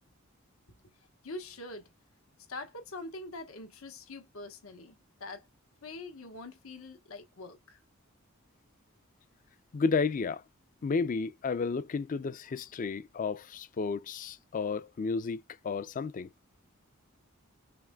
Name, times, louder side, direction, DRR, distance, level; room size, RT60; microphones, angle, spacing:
voice 1, 1.2-1.9 2.5-5.5 5.8-7.8, left 2 dB, 90° left, 1.1 m, -44 dB
voice 2, 9.7-10.4 10.8-16.3, left 4 dB, 40° left, 0.4 m, -32 dB
5.8 x 2.2 x 2.3 m
head